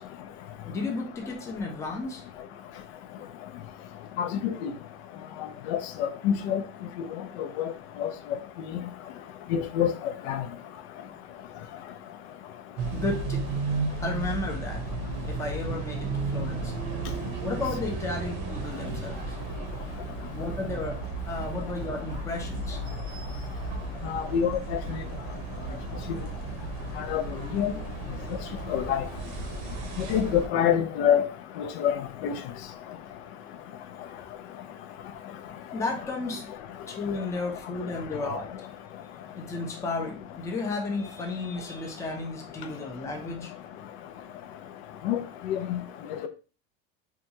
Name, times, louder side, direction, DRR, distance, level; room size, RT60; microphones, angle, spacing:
voice 1, 0.7-2.2 12.9-13.4 14.0-14.9 15.3-16.7 17.4-19.4 20.3-22.8 35.7-36.5 36.9-38.7 39.3-43.5, left 3 dB, 10° left, 0.4 m, -33 dB
voice 2, 4.2-4.7 5.7-6.6 8.0-8.1 9.5-10.4 24.0-24.8 27.1-27.2 27.5-27.7 28.7-29.0 30.0-31.2 31.6-32.0 32.2-32.3 45.0-45.2 45.5-45.8, left 9 dB, 80° left, 0.5 m, -26 dB
sound 1, 12.8-30.5, right 3 dB, 60° right, 0.7 m, -34 dB
2.8 x 2.3 x 2.7 m
supercardioid pair, 145°, 32 cm